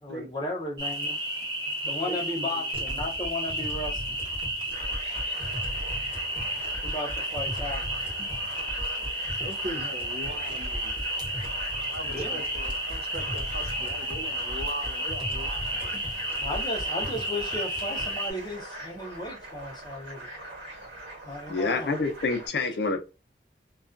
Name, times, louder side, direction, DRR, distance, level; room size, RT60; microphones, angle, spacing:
voice 1, 0.0-1.2 1.8-4.2 6.8-7.9 12.1-12.4 16.4-20.2 21.2-22.0, left 1 dB, 25° left, 0.6 m, -35 dB
sound 1, 0.8-18.3, right 1 dB, 25° right, 0.6 m, -32 dB
voice 2, 2.0-2.5 9.4-10.9 11.9-15.9, equal, 70° right, 0.5 m, -40 dB
sound 2, 2.7-18.2, equal, 10° right, 1.0 m, -39 dB
sound 3, 4.7-22.5, right 1 dB, 90° right, 1.2 m, -43 dB
voice 3, 21.5-23.0, left 3 dB, 70° left, 0.5 m, -27 dB
2.3 x 2.3 x 2.4 m
head